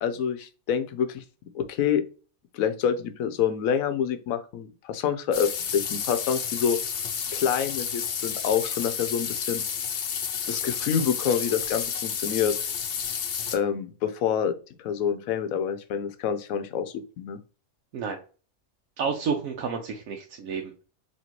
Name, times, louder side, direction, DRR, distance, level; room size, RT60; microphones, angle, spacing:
voice 1, 0.0-1.2 1.5-2.0 2.5-6.8 7.3-9.6 10.5-12.5 13.5-14.5 14.8-17.4, left 8 dB, 75° left, 10 dB, 1.0 m, -27 dB
sound 1, 5.3-13.6, left 7 dB, 60° left, 0.6 m, -31 dB
voice 2, 19.0-20.8, right 5 dB, 75° right, 2 dB, 1.0 m, -30 dB
4.2 x 2.9 x 2.9 m, 0.36 s
omnidirectional pair, 1.5 m